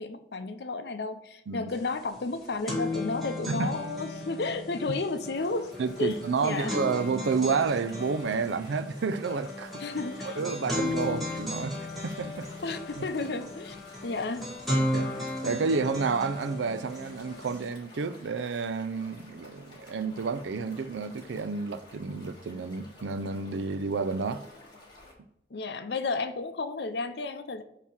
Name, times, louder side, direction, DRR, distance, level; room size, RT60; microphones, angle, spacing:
voice 1, 0.0-5.7 6.0-6.7 9.8-10.4 11.1-11.2 12.2-12.3 12.6-13.8 14.0-14.5 25.5-27.6, left 3 dB, 65° left, 0.6 m, -32 dB
sound 1, 1.7-1.8 2.1-17.7, left 1 dB, ahead, 1.5 m, -35 dB
sound 2, 5.4-25.1, left 2 dB, 25° left, 1.7 m, -52 dB
voice 2, 5.8-9.8 10.2-12.5 14.7-24.4, right 4 dB, 80° right, 0.4 m, -30 dB
8.3 x 2.9 x 5.9 m
head